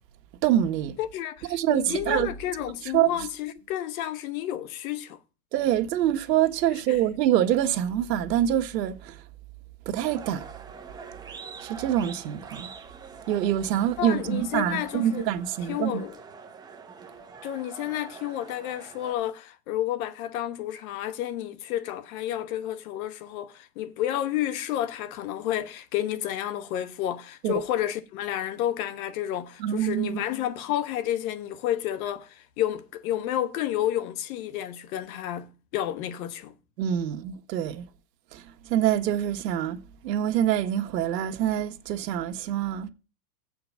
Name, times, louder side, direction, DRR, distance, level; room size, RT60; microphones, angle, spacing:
voice 1, 0.4-0.9 1.5-2.3 2.8-3.1 5.5-9.2 9.8-10.5 11.6-12.7 13.3-16.0 27.4-27.6 29.6-30.2 36.8-37.8 38.3-42.9, right 11 dB, 80° right, 1.4 m, -25 dB
voice 2, 1.0-5.2 14.0-15.3 15.7-16.1 17.4-36.5, left 12 dB, 55° left, 1.2 m, -31 dB
sound 1, 10.0-19.1, right 5 dB, 10° right, 0.8 m, -45 dB
8.1 x 5.0 x 7.3 m
supercardioid pair, 150°, 49 cm